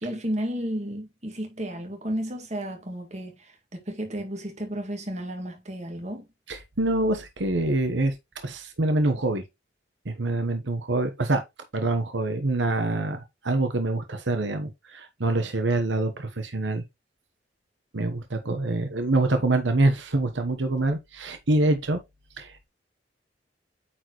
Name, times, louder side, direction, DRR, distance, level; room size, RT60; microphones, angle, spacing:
voice 1, 0.0-6.3, equal, 40° right, 1.9 m, -33 dB
voice 2, 6.5-8.2 8.4-9.4 10.0-11.4 11.7-16.8 17.9-22.0 22.4-22.7, right 2 dB, 85° right, 1.1 m, -25 dB
8.8 x 4.3 x 3.0 m
head